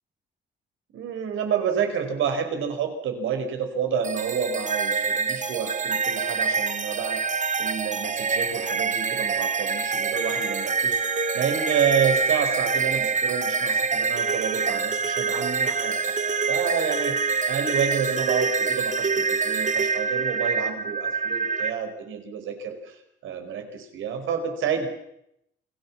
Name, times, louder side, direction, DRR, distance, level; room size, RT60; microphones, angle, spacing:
voice 1, 0.9-7.2 7.6-11.0 11.3-17.2 17.5-23.0 23.2-24.9, right 7 dB, 80° right, 6 dB, 5.0 m, -29 dB
sound 1, 4.0-21.7, right 5 dB, 40° right, 1.8 m, -26 dB
28.5 x 18.5 x 7.4 m, 0.79 s
cardioid pair, 90°, 20 cm